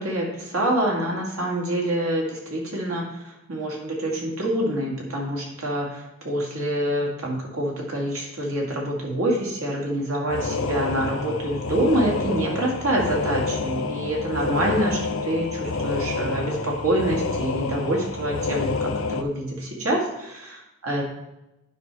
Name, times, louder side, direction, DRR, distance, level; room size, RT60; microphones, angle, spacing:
voice 1, 0.0-3.0 3.5-21.0, right 1 dB, 85° right, -2 dB, 2.1 m, -26 dB
sound 1, 10.3-19.2, left 4 dB, 65° left, 0.5 m, -28 dB
9.7 x 5.5 x 3.4 m, 0.91 s
head